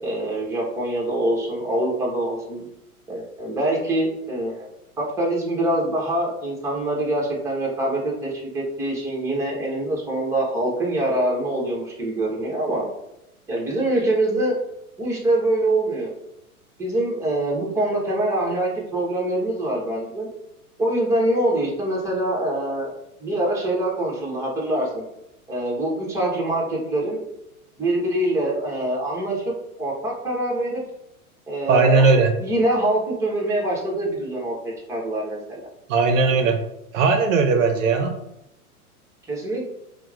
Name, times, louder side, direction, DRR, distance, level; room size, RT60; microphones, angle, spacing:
voice 1, 0.0-2.7 3.1-4.7 5.0-12.9 13.5-14.6 15.0-16.1 16.8-20.3 20.8-22.9 23.2-25.0 25.5-27.2 27.8-29.5 29.8-30.8 31.5-32.1 32.4-35.7 39.3-39.7, right 1 dB, 5° right, -3 dB, 0.8 m, -24 dB
voice 2, 31.7-32.3 35.9-36.6 36.9-38.2, right 4 dB, 60° right, 5 dB, 0.5 m, -18 dB
4.4 x 2.1 x 2.3 m, 0.84 s
hypercardioid pair, 100°, 45 cm